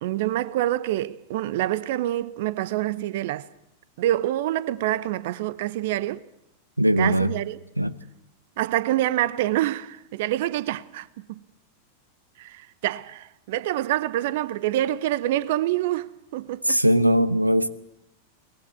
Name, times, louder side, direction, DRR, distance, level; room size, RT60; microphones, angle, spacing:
voice 1, 0.0-3.5 4.0-6.2 7.0-7.6 8.6-11.1 12.4-16.8, right 14 dB, 50° right, 0.8 m, -26 dB
voice 2, 6.8-7.3 7.8-8.0 16.6-17.7, right 1 dB, 85° right, 0.8 m, -20 dB
23.0 x 20.0 x 8.0 m
figure-of-eight pair, 90°, 0 cm